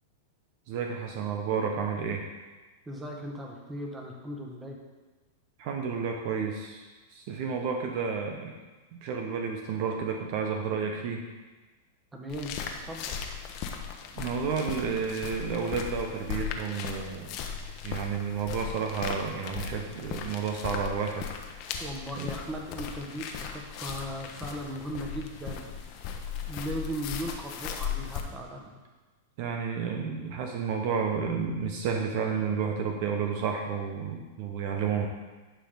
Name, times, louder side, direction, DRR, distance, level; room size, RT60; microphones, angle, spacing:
voice 1, 0.7-2.2 5.6-8.6 9.0-11.2 14.2-17.3 17.8-21.3 22.1-22.3 29.4-35.1, right 6 dB, 55° right, 3 dB, 0.9 m, -31 dB
voice 2, 2.9-4.8 12.1-12.5 12.9-13.3 21.8-25.6 26.5-28.7, equal, 15° right, 1 dB, 1.5 m, -37 dB
sound 1, 12.3-28.2, left 7 dB, 50° left, 1.0 m, -37 dB
11.0 x 5.0 x 3.9 m, 1.2 s
hypercardioid pair, 105°, 0 cm